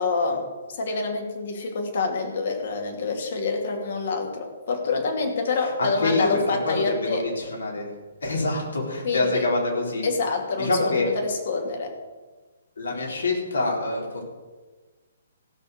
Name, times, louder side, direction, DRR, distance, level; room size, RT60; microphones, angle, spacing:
voice 1, 0.0-7.2 9.0-9.5 10.0-11.9, left 4 dB, 55° left, 2 dB, 2.7 m, -27 dB
voice 2, 5.8-6.4 6.6-7.9 8.2-10.0 10.6-11.1 12.8-14.2, left 2 dB, 70° left, -1 dB, 4.1 m, -26 dB
16.0 x 6.8 x 6.7 m, 1.3 s
figure-of-eight pair, 130°, 0 cm